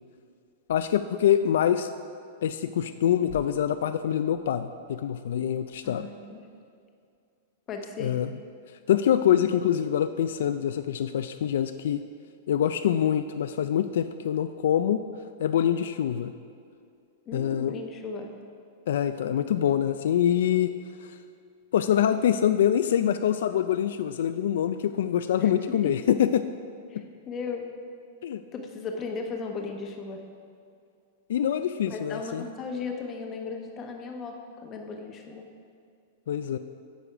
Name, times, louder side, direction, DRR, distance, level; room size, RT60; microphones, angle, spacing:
voice 1, 0.7-1.9 2.4-6.1 8.0-8.3 8.9-12.0 12.5-15.0 15.4-16.3 17.3-17.8 18.9-20.7 21.7-26.5 28.2-28.4 31.3-32.4 36.3-36.6, left 10 dB, 75° left, 10 dB, 0.3 m, -25 dB
voice 2, 5.8-6.4 7.7-8.2 17.3-18.3 25.4-25.9 26.9-27.6 28.5-30.2 31.9-35.5, left 4 dB, 25° left, 3 dB, 0.9 m, -36 dB
9.0 x 6.9 x 4.9 m, 2.4 s
supercardioid pair, 160°, 0 cm